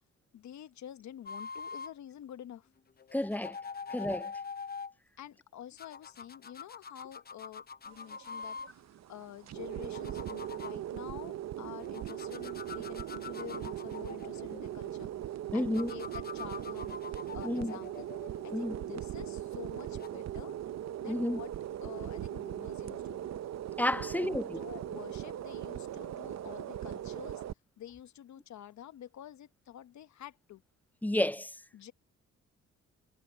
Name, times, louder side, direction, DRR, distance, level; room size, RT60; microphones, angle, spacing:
voice 1, 0.3-2.7 5.2-18.1 18.4-20.6 21.0-21.5 21.8-23.4 23.9-27.4 27.8-30.6 31.7-31.9, left 11 dB, 65° left, 1.2 m, -48 dB
sound 1, 1.3-1.9 3.0-4.9 5.8-8.7 9.6-10.8 11.8-15.0 15.7-19.0 19.9-20.1, left 5 dB, 30° left, 0.8 m, -44 dB
voice 2, 3.1-3.6 3.9-4.3 15.5-16.0 17.4-17.7 18.5-18.7 21.1-21.4 23.8-24.6 31.0-31.6, left 1 dB, 5° left, 0.5 m, -31 dB
sound 2, 7.9-27.5, right 11 dB, 60° right, 0.9 m, -40 dB
cardioid pair, 90°, 30 cm